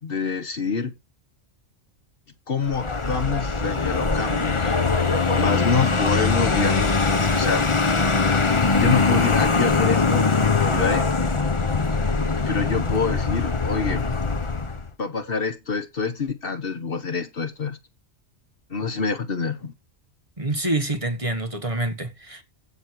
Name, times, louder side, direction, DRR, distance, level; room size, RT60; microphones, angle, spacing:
voice 1, 0.0-0.9 2.5-4.8 5.3-7.7 8.7-11.1 12.5-14.1 15.0-17.8 18.7-19.7, left 5 dB, 55° left, 1.4 m, -26 dB
Vehicle, 2.6-14.9, left 4 dB, 30° left, 1.0 m, -22 dB
voice 2, 20.4-22.4, right 2 dB, 30° right, 1.7 m, -26 dB
15.5 x 6.5 x 4.7 m
omnidirectional pair, 1.1 m